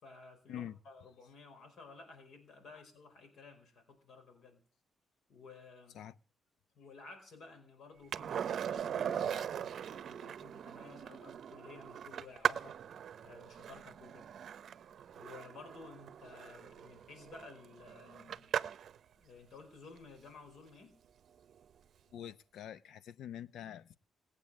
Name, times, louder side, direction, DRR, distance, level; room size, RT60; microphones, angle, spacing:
voice 1, 0.0-4.6 5.3-6.0 6.7-12.8 13.2-14.3 15.1-18.5 19.2-21.0, left 4 dB, 65° left, 4.7 m, -54 dB
Skateboard, 8.1-19.0 21.5-21.6, right 9 dB, 60° right, 0.7 m, -40 dB
voice 2, 22.1-24.0, left 10 dB, 85° left, 0.7 m, -45 dB
20.0 x 8.6 x 7.4 m
cardioid pair, 140°, 0 cm